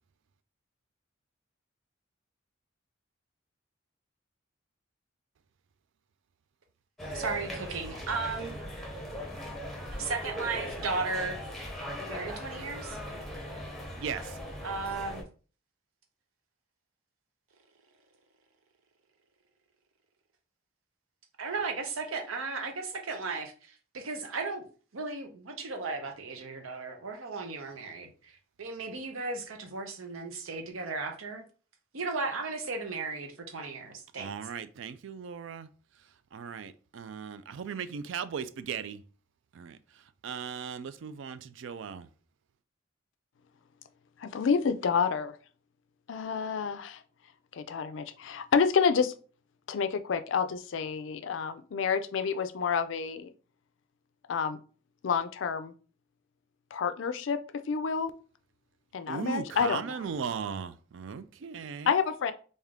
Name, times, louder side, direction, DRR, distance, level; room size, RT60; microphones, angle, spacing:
sound 1, 7.0-15.2, equal, ahead, 0.7 m, -39 dB
voice 1, 7.1-8.6 10.0-11.4 12.1-13.0 14.6-15.3 21.4-24.6 24.9-31.4 31.9-34.3, right 3 dB, 90° right, 0.8 m, -35 dB
voice 2, 14.0-14.4 34.2-35.7 36.3-39.0 39.5-39.8 40.2-42.1 59.1-61.9, right 6 dB, 65° right, 0.3 m, -37 dB
voice 3, 44.2-45.4 46.1-47.0 47.5-49.1 49.7-53.3 54.3-54.6 55.0-55.7 56.7-58.1 58.9-60.1 61.9-62.3, left 6 dB, 65° left, 0.4 m, -29 dB
3.5 x 2.7 x 3.5 m
head